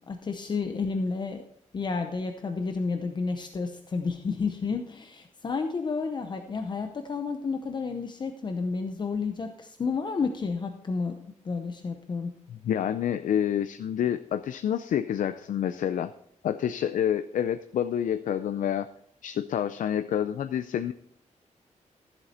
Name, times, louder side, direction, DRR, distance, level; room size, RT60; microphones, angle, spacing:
voice 1, 0.0-1.4 1.7-11.2 11.4-12.3, left 4 dB, 35° left, 5 dB, 0.7 m, -31 dB
voice 2, 12.5-16.1 16.4-18.9 19.2-20.9, left 9 dB, 85° left, 11 dB, 0.4 m, -28 dB
13.5 x 7.6 x 4.2 m, 0.69 s
wide cardioid pair, 175°, 13 cm